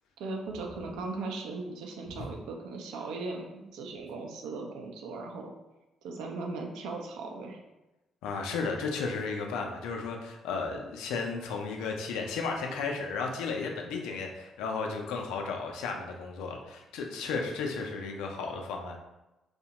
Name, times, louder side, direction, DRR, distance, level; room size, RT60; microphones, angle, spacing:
voice 1, 0.2-5.5 6.0-7.6, right 3 dB, 70° right, 1 dB, 0.4 m, -38 dB
voice 2, 8.2-19.0, left 4 dB, 70° left, 2 dB, 0.4 m, -34 dB
2.7 x 2.1 x 2.8 m, 1.0 s
figure-of-eight pair, 45°, 0 cm